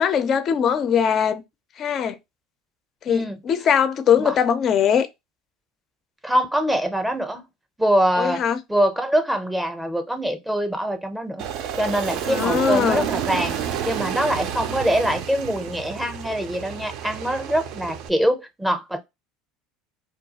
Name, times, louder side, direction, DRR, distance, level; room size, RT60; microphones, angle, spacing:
voice 1, 0.0-1.4 1.8-2.2 3.0-5.1 8.2-8.6 12.2-13.1, left 8 dB, 40° left, 0.4 m, -21 dB
voice 2, 3.1-3.4 4.2-4.4 6.2-7.4 7.8-8.4 8.7-11.5 11.8-13.6 13.8-19.0, equal, 5° right, 0.6 m, -24 dB
Aircraft, 11.4-18.1, right 9 dB, 60° right, 0.4 m, -30 dB
2.3 x 2.2 x 2.7 m
supercardioid pair, 110°, 0 cm